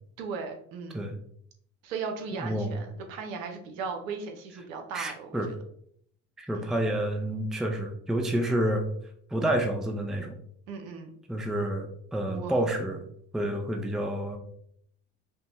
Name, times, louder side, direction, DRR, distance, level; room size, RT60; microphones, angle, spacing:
voice 1, 0.2-1.0 1.8-5.5 6.5-6.7 10.7-11.1 12.3-12.6, right 5 dB, 80° right, 4 dB, 0.9 m, -37 dB
voice 2, 2.3-2.8 4.9-5.5 6.4-8.8 9.3-10.4 11.3-13.0 13.3-14.4, right 1 dB, ahead, 4 dB, 0.5 m, -29 dB
5.5 x 2.2 x 3.0 m, 0.67 s
hypercardioid pair, 75°, 39 cm